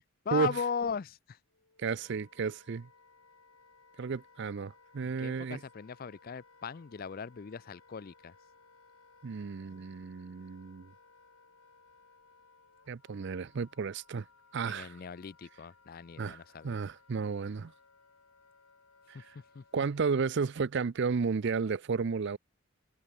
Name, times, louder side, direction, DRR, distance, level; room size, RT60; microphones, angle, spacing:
voice 1, 0.3-1.4 5.0-8.3 14.7-16.8 19.1-19.2 19.5-19.6, left 6 dB, 40° left, 0.4 m, -38 dB
Wind instrument woodwind instrument, 1.5-20.3, left 4 dB, 80° left, 6.3 m, -62 dB
voice 2, 1.8-2.9 4.0-5.6 9.2-10.9 12.9-14.3 14.5-15.0 16.2-17.7 19.1-19.4 19.7-22.4, right 5 dB, 50° right, 0.4 m, -33 dB
head